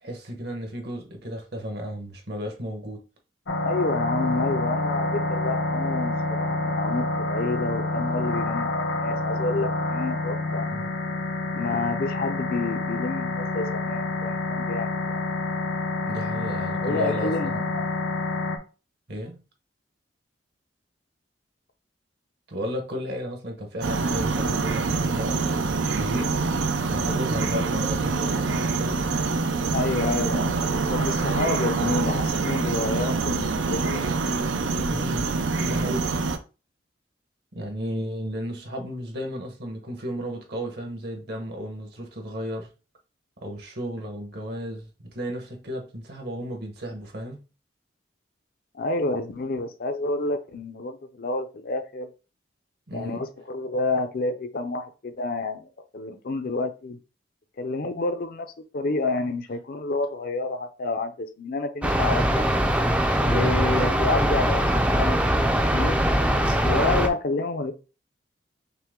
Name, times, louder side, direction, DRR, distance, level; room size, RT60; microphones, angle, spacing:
voice 1, 0.0-3.0 10.7-10.9 16.1-17.8 19.1-19.4 22.5-26.4 26.8-29.0 34.9-35.3 35.6-36.2 37.5-42.7 43.4-47.4 52.9-53.2 63.2-63.5, equal, 60° right, 1.2 m, -34 dB
sound 1, 3.5-18.6, left 2 dB, 90° left, 0.8 m, -28 dB
voice 2, 3.6-10.7 11.5-15.2 16.8-17.9 29.7-30.6 30.9-34.0 48.7-52.1 52.9-57.0 57.6-58.5 58.7-62.4 63.3-64.7 65.0-65.2 65.7-66.0 66.6-67.7, left 3 dB, 55° left, 0.5 m, -29 dB
sound 2, 23.8-36.4, right 4 dB, 85° right, 0.6 m, -25 dB
sound 3, 61.8-67.1, equal, 5° right, 0.4 m, -22 dB
5.7 x 2.2 x 3.6 m
head